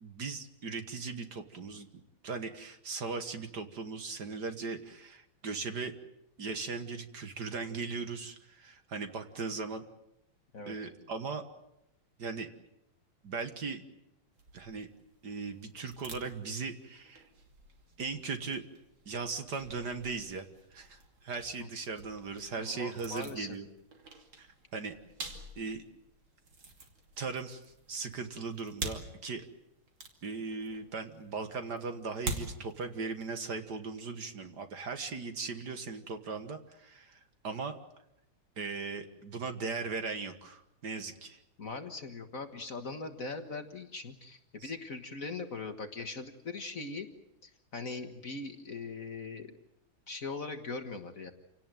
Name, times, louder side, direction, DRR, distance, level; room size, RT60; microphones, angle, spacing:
voice 1, 0.0-1.9 2.2-5.9 6.4-9.8 10.7-11.4 12.2-12.5 13.2-13.8 14.5-14.9 15.2-17.2 18.0-18.6 19.1-20.5 20.7-23.7 24.4-24.9 25.6-25.8 27.2-27.6 27.9-29.4 30.2-37.8 38.6-41.4 44.6-44.7, right 4 dB, 50° right, 8 dB, 2.0 m, -38 dB
sound 1, 14.3-33.4, right 3 dB, 70° right, 3.5 m, -47 dB
voice 2, 22.6-23.6 41.6-47.1 47.4-49.6 50.1-51.3, left 3 dB, 45° left, 7 dB, 1.7 m, -40 dB
28.0 x 18.0 x 9.2 m, 0.82 s
omnidirectional pair, 2.3 m